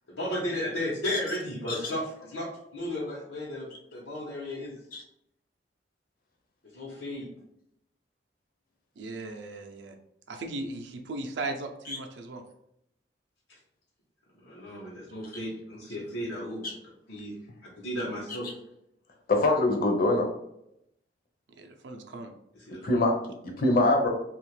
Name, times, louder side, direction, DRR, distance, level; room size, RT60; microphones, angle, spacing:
voice 1, 0.1-2.5 2.7-4.8 6.7-7.3 14.4-16.6 17.1-17.3 17.7-18.5 22.5-23.0, left 1 dB, 90° left, -7 dB, 0.9 m, -34 dB
voice 2, 9.0-9.9 10.3-12.4 21.6-22.3, right 2 dB, 70° right, 5 dB, 0.5 m, -37 dB
voice 3, 19.3-20.3 22.8-23.1 23.4-24.1, left 2 dB, 50° left, 2 dB, 0.6 m, -24 dB
2.8 x 2.4 x 3.1 m, 0.79 s
head